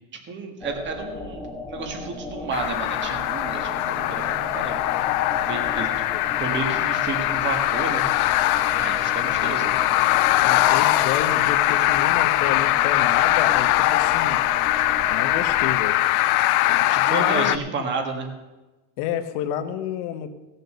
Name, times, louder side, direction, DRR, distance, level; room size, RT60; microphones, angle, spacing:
voice 1, 0.3-4.8 5.4-5.9 6.4-8.0 8.8-9.8 16.9-18.3, right 4 dB, 25° right, 4 dB, 1.7 m, -31 dB
sound 1, 0.6-15.8, left 1 dB, 5° left, 0.3 m, -36 dB
sound 2, 2.5-17.6, left 16 dB, 70° left, 0.7 m, -21 dB
voice 2, 9.2-9.6 10.4-14.4 15.1-16.0 16.7-17.7 19.0-20.3, left 10 dB, 50° left, 9 dB, 1.2 m, -30 dB
17.0 x 6.7 x 6.8 m, 1.1 s
supercardioid pair, 165°, 45 cm